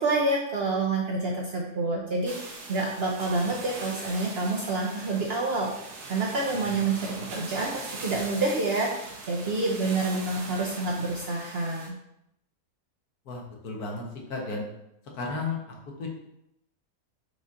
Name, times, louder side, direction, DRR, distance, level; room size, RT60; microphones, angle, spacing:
voice 1, 0.0-11.9, right 3 dB, 60° right, -2 dB, 0.7 m, -28 dB
sound 1, 2.3-11.9, right 3 dB, 80° right, 1.4 m, -41 dB
voice 2, 13.2-14.0 14.3-14.6 15.1-15.6 16.0-16.1, left 3 dB, 75° left, 0 dB, 1.5 m, -33 dB
4.8 x 4.1 x 2.5 m, 0.80 s
omnidirectional pair, 1.6 m